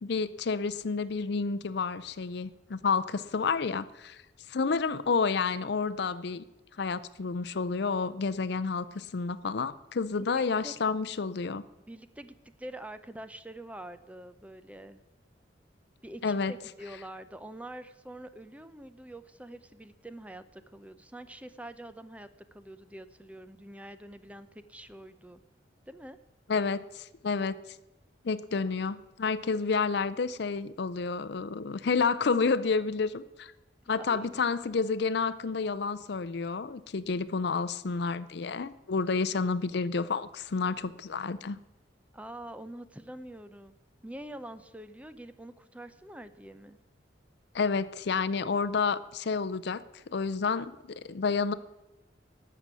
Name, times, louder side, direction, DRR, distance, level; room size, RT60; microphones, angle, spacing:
voice 1, 0.0-4.2 4.5-6.4 6.8-11.6 16.2-16.5 26.5-27.6 28.2-33.5 33.9-41.6 47.5-51.5, left 4 dB, 60° left, 14 dB, 0.5 m, -30 dB
voice 2, 10.4-10.8 11.9-15.0 16.0-25.4 25.9-26.2 34.0-34.4 42.1-43.7 44.0-46.8, right 1 dB, 10° right, 12 dB, 0.5 m, -45 dB
12.0 x 6.9 x 9.5 m, 0.99 s
head